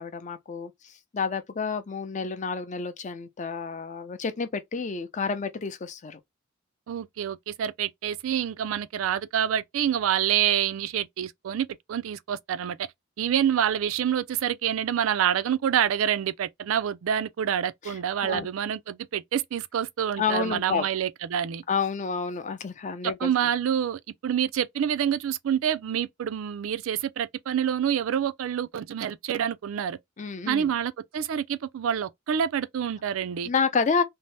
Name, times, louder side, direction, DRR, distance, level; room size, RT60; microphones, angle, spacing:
voice 1, 0.0-6.2 17.8-17.9 18.2-18.5 20.2-20.9 21.7-23.3 30.2-30.7 33.4-34.0, left 5 dB, 35° left, 0.5 m, -29 dB
voice 2, 6.9-12.9 13.2-21.6 23.0-30.0 30.5-33.5, right 9 dB, 85° right, 0.3 m, -27 dB
2.7 x 2.1 x 3.1 m
head